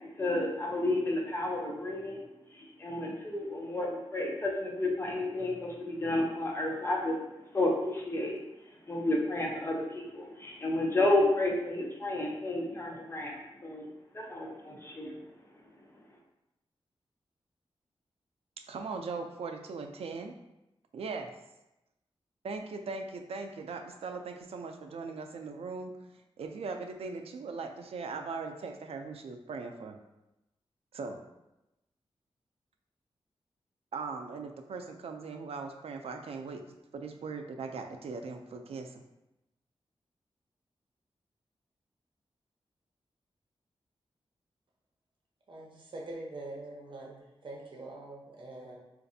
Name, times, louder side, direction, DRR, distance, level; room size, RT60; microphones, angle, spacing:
voice 1, 0.0-2.3 2.5-13.9 14.1-15.2, left 1 dB, 25° left, -1 dB, 0.6 m, -31 dB
voice 2, 18.7-20.4 20.9-21.3 22.4-25.9 26.4-30.0 30.9-31.2 33.9-36.6 36.9-39.0, right 4 dB, 80° right, 5 dB, 0.4 m, -39 dB
voice 3, 45.5-48.8, right 2 dB, 55° right, -2 dB, 0.8 m, -44 dB
3.9 x 2.5 x 2.6 m, 0.93 s
wide cardioid pair, 130°, 10 cm